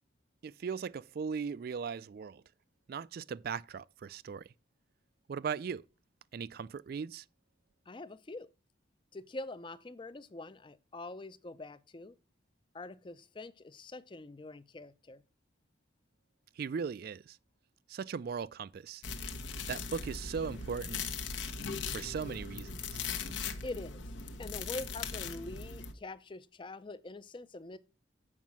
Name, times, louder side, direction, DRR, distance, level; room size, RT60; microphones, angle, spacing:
voice 1, 0.4-2.4 2.9-4.5 5.3-5.8 6.3-7.2 16.6-17.4 17.9-19.0 19.7-21.0 21.9-23.0, right 6 dB, 50° right, 0.3 m, -38 dB
voice 2, 7.9-8.5 9.1-12.2 12.7-15.2 23.6-24.0 24.4-27.8, left 2 dB, 25° left, 0.4 m, -44 dB
sound 1, 19.0-25.9, left 5 dB, 75° left, 1.0 m, -39 dB
7.4 x 5.2 x 6.0 m
head